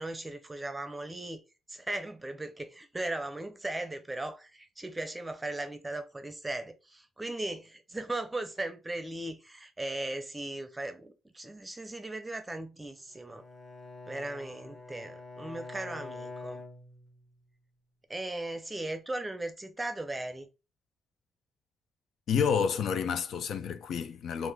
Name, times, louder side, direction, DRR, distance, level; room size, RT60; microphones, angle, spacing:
voice 1, 0.0-1.4 1.7-13.4 14.1-16.6 18.1-20.5, right 2 dB, 15° right, 0.6 m, -37 dB
Bowed string instrument, 13.1-17.5, left 3 dB, 20° left, 1.1 m, -46 dB
voice 2, 22.3-24.5, left 6 dB, 70° left, 0.4 m, -29 dB
3.0 x 2.5 x 3.5 m
cardioid pair, 85°, 0 cm